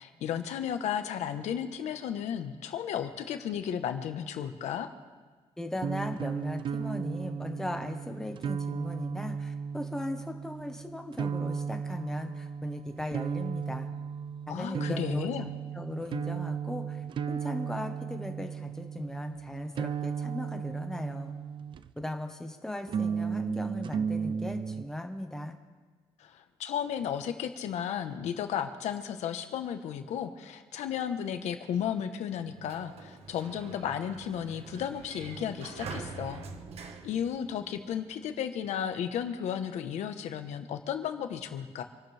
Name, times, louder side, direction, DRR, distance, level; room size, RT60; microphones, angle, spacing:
voice 1, 0.0-4.9 14.5-15.5 26.2-36.4 37.0-41.8, left 9 dB, 85° left, 7 dB, 1.3 m, -34 dB
voice 2, 5.6-13.9 14.5-15.5 15.7-21.3 22.0-25.6, left 1 dB, 5° left, 4 dB, 1.3 m, -38 dB
sound 1, 5.8-22.1 22.9-24.8, right 7 dB, 45° right, 0.6 m, -35 dB
Sliding door, 32.4-38.0, right 4 dB, 65° right, 1.4 m, -44 dB
27.5 x 12.0 x 3.5 m, 1.4 s
cardioid pair, 145°, 11 cm